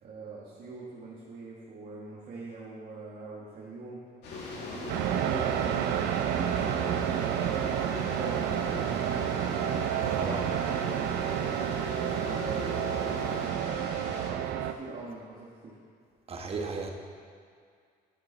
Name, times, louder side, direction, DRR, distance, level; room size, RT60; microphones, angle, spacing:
voice 1, 0.0-4.0 4.5-5.9 6.2-9.6 10.1-11.5 12.1-15.8, right 3 dB, 55° right, -6 dB, 1.7 m, -43 dB
sound 1, 4.2-14.3, left 2 dB, 80° left, 2.0 m, -41 dB
sound 2, 4.3-13.5, left 3 dB, 45° left, 1.1 m, -42 dB
sound 3, 4.9-14.7, right 11 dB, 80° right, 0.5 m, -30 dB
voice 2, 10.1-10.4 16.3-16.9, right 4 dB, 35° right, 2 dB, 1.2 m, -34 dB
10.5 x 9.0 x 4.0 m, 2.1 s
cardioid pair, 110°, 17 cm